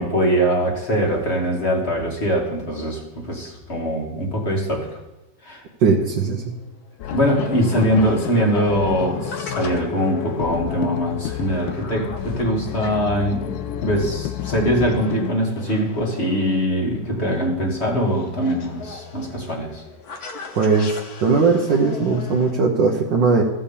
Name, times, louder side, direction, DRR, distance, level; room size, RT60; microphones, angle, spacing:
voice 1, 0.0-4.9 5.4-5.6 7.1-13.5 13.8-19.8, equal, 35° left, -1 dB, 2.3 m, -22 dB
voice 2, 5.8-6.5 20.5-23.4, right 4 dB, 75° right, -1 dB, 1.7 m, -19 dB
sound 1, 5.9-22.5, left 4 dB, 60° left, 1.7 m, -37 dB
sound 2, 7.0-15.3, left 12 dB, 85° left, 1.3 m, -30 dB
15.0 x 5.6 x 7.0 m, 0.99 s
omnidirectional pair, 2.0 m